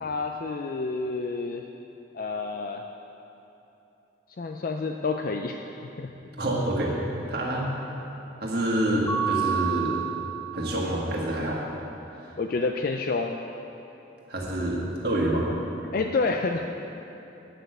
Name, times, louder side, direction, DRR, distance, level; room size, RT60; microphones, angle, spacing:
voice 1, 0.0-1.7 2.1-2.8 4.4-5.6 6.0-6.1 12.4-13.4 15.9-16.7, left 3 dB, 45° left, 4 dB, 0.4 m, -28 dB
voice 2, 6.4-6.9 7.3-7.7 8.4-9.9 10.5-11.6 14.3-15.5, right 1 dB, 55° right, -3 dB, 1.6 m, -27 dB
Mallet percussion, 9.1-10.9, right 8 dB, 10° left, 0.6 m, -29 dB
9.2 x 6.2 x 7.7 m, 3.0 s
head